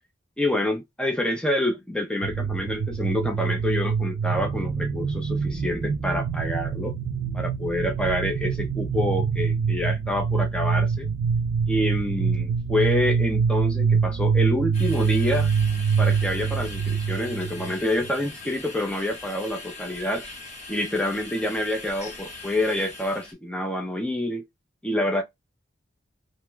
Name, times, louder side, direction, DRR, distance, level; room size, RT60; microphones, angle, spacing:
voice 1, 0.4-6.9 7.3-11.1 11.7-15.5 16.0-20.3 20.7-24.4 24.8-25.2, left 1 dB, 5° left, 0.5 m, -27 dB
sound 1, 2.2-18.1, right 6 dB, 70° right, 0.5 m, -25 dB
sound 2, 14.7-23.3, left 2 dB, 35° left, 0.9 m, -41 dB
2.9 x 2.2 x 3.2 m
head